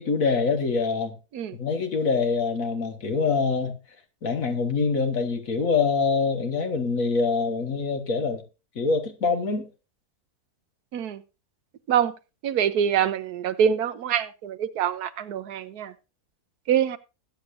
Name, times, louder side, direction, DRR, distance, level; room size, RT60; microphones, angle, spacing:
voice 1, 0.0-1.2 1.6-3.8 4.2-8.4 8.8-9.7, left 4 dB, 65° left, 1.8 m, -25 dB
voice 2, 10.9-11.2 11.9-12.1 12.4-15.9 16.7-17.0, right 8 dB, 80° right, 1.3 m, -25 dB
20.5 x 8.4 x 2.5 m
omnidirectional pair, 1.6 m